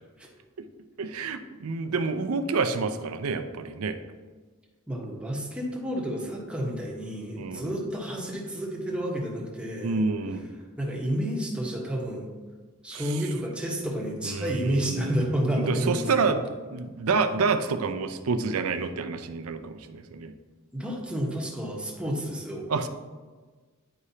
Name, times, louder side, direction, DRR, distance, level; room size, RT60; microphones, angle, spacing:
voice 1, 1.0-4.0 7.4-7.8 9.8-10.5 12.9-13.0 14.2-15.1 15.6-16.4 16.7-20.3 22.7-22.9, right 4 dB, 85° right, 8 dB, 0.5 m, -28 dB
voice 2, 4.9-10.0 10.8-12.3 12.8-16.4 20.7-22.6, equal, 5° right, -3 dB, 1.2 m, -30 dB
9.9 x 4.8 x 2.8 m, 1.4 s
head